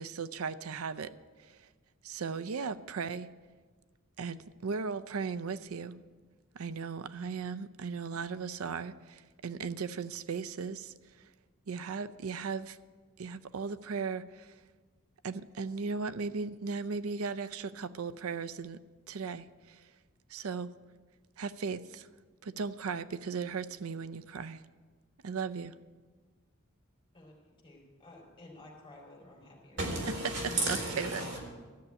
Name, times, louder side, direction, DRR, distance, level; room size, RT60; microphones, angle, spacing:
voice 1, 0.0-1.7 2.0-3.3 4.2-6.0 6.5-11.3 11.7-12.8 13.2-14.6 15.2-18.8 19.1-19.9 20.3-20.7 21.4-22.1 22.4-24.6 25.2-25.8 30.4-31.3, right 5 dB, 80° right, 13 dB, 0.5 m, -37 dB
voice 2, 27.6-29.8, left 2 dB, 25° left, -2 dB, 4.0 m, -53 dB
voice 3, 29.8-31.4, right 2 dB, 55° right, -1 dB, 3.9 m, -33 dB
13.5 x 6.9 x 9.8 m, 1.4 s
head